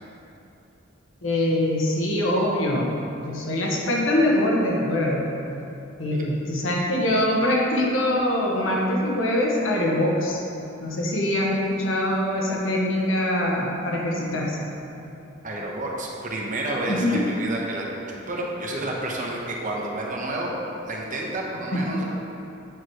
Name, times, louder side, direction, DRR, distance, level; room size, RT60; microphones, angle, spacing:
voice 1, 1.2-2.9 3.2-5.4 6.0-10.4 10.8-14.7 16.8-17.3 21.7-21.8, left 1 dB, 80° left, -2 dB, 1.3 m, -23 dB
voice 2, 15.4-20.6 20.8-22.0, right 1 dB, 40° right, -2 dB, 1.0 m, -30 dB
8.4 x 4.8 x 4.7 m, 2.9 s
head